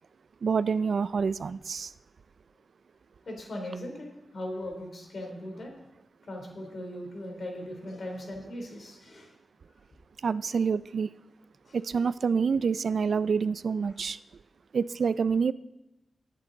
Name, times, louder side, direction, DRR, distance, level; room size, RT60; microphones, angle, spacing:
voice 1, 0.4-1.9 10.2-11.1 11.7-14.2 14.7-15.5, right 5 dB, 60° right, 0.4 m, -27 dB
voice 2, 3.2-4.1 4.3-5.8 6.3-9.3 11.6-11.8, left 1 dB, 50° left, 3.2 m, -39 dB
19.5 x 8.5 x 3.9 m
wide cardioid pair, 155°, 0 cm